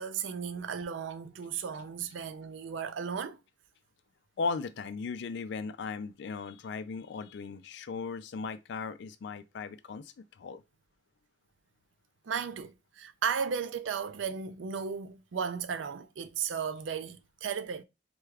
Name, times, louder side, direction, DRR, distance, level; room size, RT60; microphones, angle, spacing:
voice 1, 0.0-3.4 12.3-17.8, right 6 dB, 80° right, 0.4 m, -35 dB
voice 2, 4.4-10.6, left 4 dB, 65° left, 0.3 m, -37 dB
4.7 x 2.2 x 2.3 m
head